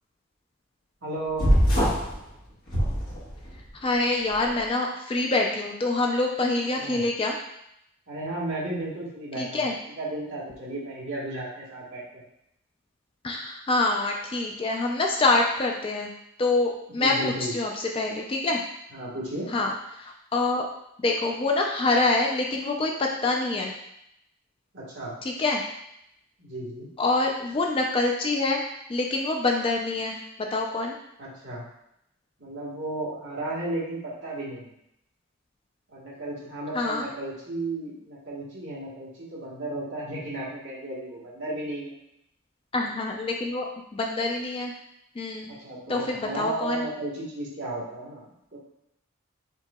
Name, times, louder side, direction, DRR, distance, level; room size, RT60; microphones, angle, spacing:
voice 1, 1.0-1.5 6.8-7.0 8.1-9.6 10.0-12.2 17.0-17.5 18.9-19.5 24.7-25.1 26.4-26.9 31.2-31.6 32.4-34.7 35.9-41.9 45.5-48.2 48.5-48.6, right 2 dB, 55° right, -6 dB, 1.3 m, -34 dB
sound 1, 1.4-2.1 2.7-3.6, equal, 40° left, 1.2 m, -22 dB
voice 2, 3.7-7.4 9.4-9.7 13.2-16.1 16.4-18.6 19.5-20.6 21.0-23.7 25.2-25.6 27.0-28.6 28.9-31.0 36.7-37.0 42.7-43.7 43.9-44.7 45.2-45.5 45.9-46.9, left 2 dB, 25° left, 1 dB, 0.3 m, -26 dB
4.6 x 3.8 x 2.3 m, 0.79 s
head